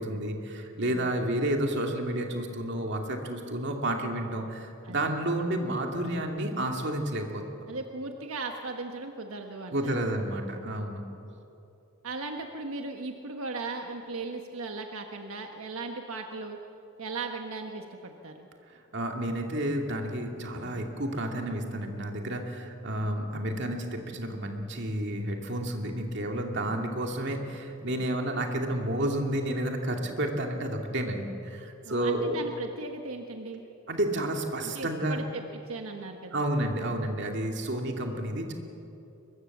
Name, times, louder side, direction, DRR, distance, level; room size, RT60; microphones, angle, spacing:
voice 1, 0.0-7.7 9.7-11.0 18.7-32.4 33.9-35.2 36.3-38.5, right 1 dB, 55° right, 2 dB, 2.6 m, -31 dB
voice 2, 7.7-10.0 12.0-16.6 17.0-18.5 31.8-33.6 34.6-36.4, right 3 dB, 85° right, 4 dB, 1.4 m, -37 dB
23.5 x 22.0 x 7.3 m, 2.8 s
head